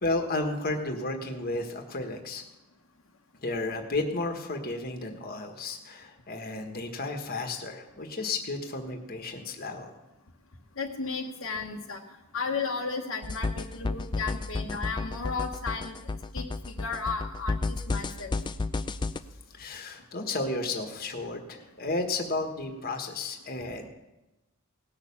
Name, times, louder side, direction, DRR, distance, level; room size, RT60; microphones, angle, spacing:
voice 1, 0.0-2.4 3.4-9.9 19.5-23.9, left 2 dB, 45° left, 4 dB, 1.4 m, -33 dB
voice 2, 10.8-12.0 12.3-18.4, left 4 dB, 70° left, 0 dB, 1.2 m, -34 dB
sound 1, 13.2-19.2, left 3 dB, 20° left, 0.4 m, -31 dB
17.5 x 6.6 x 7.1 m, 1.0 s
head